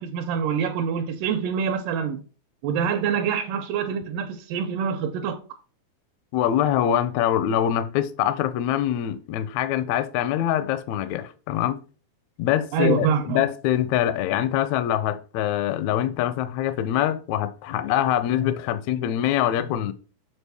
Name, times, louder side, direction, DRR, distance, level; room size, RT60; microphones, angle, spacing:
voice 1, 0.0-2.2 2.6-5.4 12.7-13.5, right 7 dB, 85° right, 2.3 m, -25 dB
voice 2, 6.3-11.8 12.4-19.9, left 11 dB, 80° left, 1.6 m, -24 dB
7.1 x 4.4 x 3.4 m
omnidirectional pair, 3.8 m